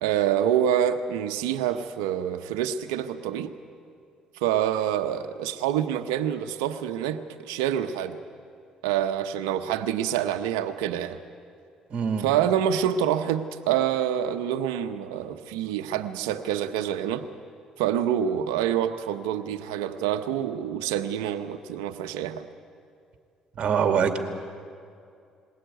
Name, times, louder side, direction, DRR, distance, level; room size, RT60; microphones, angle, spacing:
voice 1, 0.0-3.5 4.3-8.2 8.8-11.2 12.2-17.2 17.8-22.5, right 10 dB, 90° right, 7 dB, 0.8 m, -26 dB
voice 2, 11.9-12.3 23.6-24.2, right 7 dB, 50° right, 6 dB, 2.3 m, -23 dB
21.0 x 17.0 x 9.2 m, 2.4 s
supercardioid pair, 70°, 2 cm